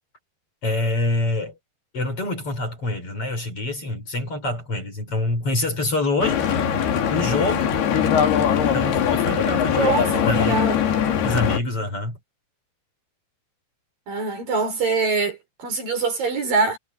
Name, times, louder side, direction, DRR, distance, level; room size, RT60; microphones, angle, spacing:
voice 1, 0.6-1.6 1.9-6.4 7.1-7.7 8.7-9.9 10.3-10.6 11.2-12.2, left 2 dB, 35° left, 5.9 m, -25 dB
Stream / Boat Water vehicle, 6.2-11.6, left 8 dB, 70° left, 4.5 m, -21 dB
voice 2, 9.7-10.8 14.1-16.8, right 4 dB, 55° right, 7.5 m, -24 dB
omnidirectional pair, 4.8 m